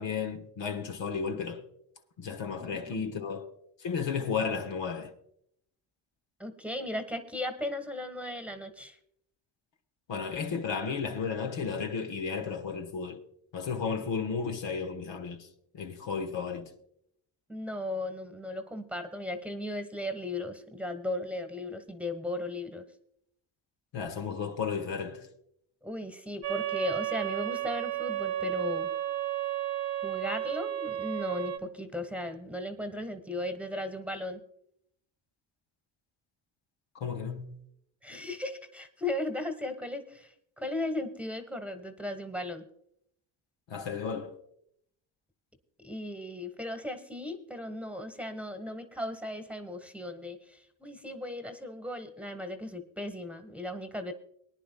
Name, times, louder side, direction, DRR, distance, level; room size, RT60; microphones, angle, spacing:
voice 1, 0.0-1.7 2.2-3.5 3.8-5.1 10.1-13.2 13.5-15.5 15.7-16.7 23.9-25.3 37.0-37.6 43.7-44.3, left 6 dB, 65° left, 1.4 m, -33 dB
voice 2, 2.6-3.0 6.4-9.0 17.5-22.9 25.8-28.9 30.0-34.4 38.0-42.7 45.8-54.1, left 1 dB, 5° right, 1.2 m, -36 dB
sound 1, 26.4-31.6, right 12 dB, 55° right, 0.9 m, -33 dB
23.0 x 10.0 x 2.2 m
cardioid pair, 75°, 47 cm